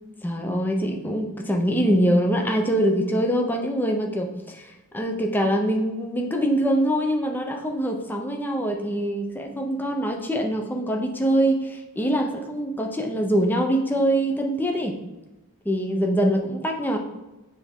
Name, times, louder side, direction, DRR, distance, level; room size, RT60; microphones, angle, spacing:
voice 1, 0.2-15.0 15.7-17.0, equal, 10° left, 2 dB, 0.6 m, -24 dB
9.5 x 3.4 x 3.6 m, 1.1 s
head